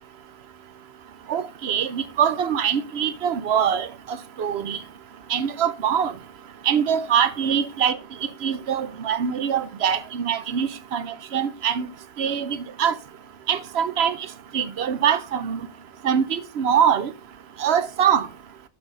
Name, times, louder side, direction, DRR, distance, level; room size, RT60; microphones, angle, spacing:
voice 1, 1.3-4.8 5.3-6.1 6.6-8.0 8.4-11.9 12.2-12.9 13.5-14.2 14.5-15.7 16.0-17.1 17.6-18.3, right 8 dB, 90° right, 1.0 m, -23 dB
12.5 x 4.8 x 3.8 m
omnidirectional pair, 1.0 m